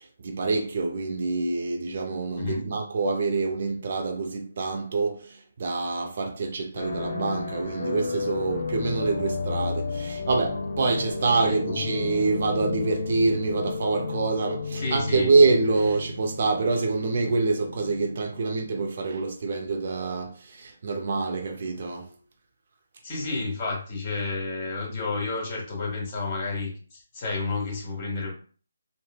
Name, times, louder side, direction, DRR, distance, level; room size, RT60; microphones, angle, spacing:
voice 1, 0.2-22.1, right 3 dB, 50° right, 0.5 m, -26 dB
sound 1, 6.8-18.8, left 3 dB, 60° left, 0.7 m, -32 dB
voice 2, 11.3-11.8 14.8-15.3 23.0-28.3, left 3 dB, 30° left, 1.1 m, -31 dB
3.1 x 2.1 x 2.3 m
figure-of-eight pair, 150°, 0 cm